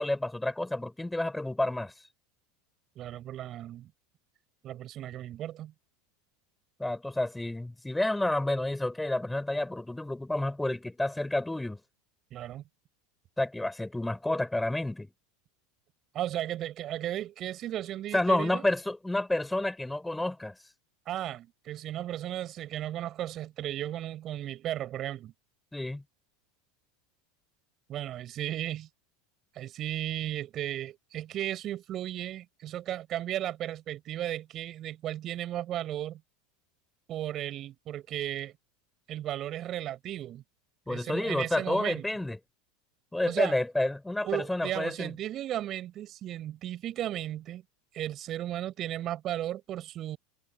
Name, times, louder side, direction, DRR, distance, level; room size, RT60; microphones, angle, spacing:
voice 1, 0.0-1.9 6.8-11.8 13.4-15.1 18.1-20.5 25.7-26.0 40.9-42.4 43.1-45.1, left 1 dB, 5° left, 6.5 m, -30 dB
voice 2, 3.0-3.9 4.6-5.7 12.3-12.6 16.1-18.6 21.1-25.3 27.9-28.9 29.5-36.2 37.1-38.5 39.1-40.4 40.9-42.0 43.2-43.6 44.2-47.6 47.9-50.2, right 12 dB, 40° right, 7.1 m, -35 dB
supercardioid pair, 120°, 0 cm